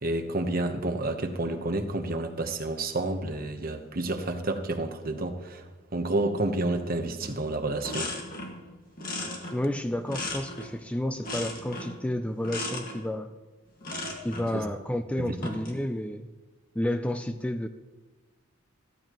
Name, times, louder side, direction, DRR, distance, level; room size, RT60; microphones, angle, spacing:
voice 1, 0.0-5.6 5.9-8.1 14.5-14.7 15.2-15.3, right 2 dB, 45° right, 5 dB, 1.1 m, -30 dB
sound 1, 7.2-7.4 7.6-8.6 9.0-10.8 11.2-12.0 12.4-13.0 13.8-14.5 15.3-15.8, left 2 dB, 45° left, 1.9 m, -36 dB
voice 2, 9.5-13.3 14.2-16.3 16.8-17.7, left 1 dB, 5° left, 8 dB, 0.4 m, -31 dB
14.5 x 13.5 x 3.1 m, 1.2 s
head